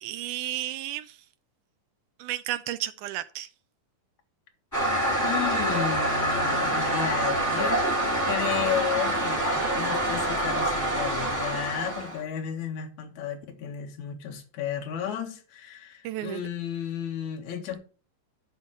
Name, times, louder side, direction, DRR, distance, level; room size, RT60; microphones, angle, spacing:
voice 1, 0.0-1.2 2.2-3.5 16.0-16.4, right 13 dB, 80° right, 1.9 m, -32 dB
Toilet flush, 4.7-12.2, right 1 dB, 5° left, 1.7 m, -26 dB
voice 2, 5.2-7.9 8.2-17.8, left 8 dB, 65° left, 2.8 m, -33 dB
11.5 x 4.0 x 6.3 m
omnidirectional pair, 3.9 m